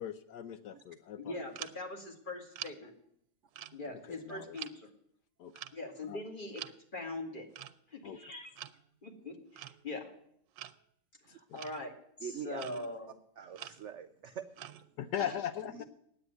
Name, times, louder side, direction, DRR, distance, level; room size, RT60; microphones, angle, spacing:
voice 1, 0.0-1.4 3.9-4.0 4.3-4.6 5.4-5.6 6.1-6.2 8.0-8.2 11.5-11.6 15.0-15.8, left 9 dB, 70° left, 12 dB, 1.2 m, -39 dB
voice 2, 1.2-2.9 3.7-4.9 5.7-6.6 6.9-7.5 7.9-8.5 9.0-10.1 11.3-13.2 15.2-15.3, left 2 dB, 30° left, 3 dB, 2.1 m, -42 dB
sound 1, 1.6-1.9 2.5-2.8 3.5-4.2 4.6-4.8 5.6-5.9 6.6-6.8 7.5-7.8 8.5-8.9 9.6-10.0 10.6-10.8 11.6-12.0 12.5-13.0 13.6-14.0 14.6-14.9, right 12 dB, 90° right, 1.3 m, -47 dB
voice 3, 12.2-12.6 13.4-14.5 15.7-15.8, right 8 dB, 65° right, 9 dB, 0.7 m, -44 dB
9.7 x 8.7 x 9.4 m, 0.72 s
omnidirectional pair, 1.9 m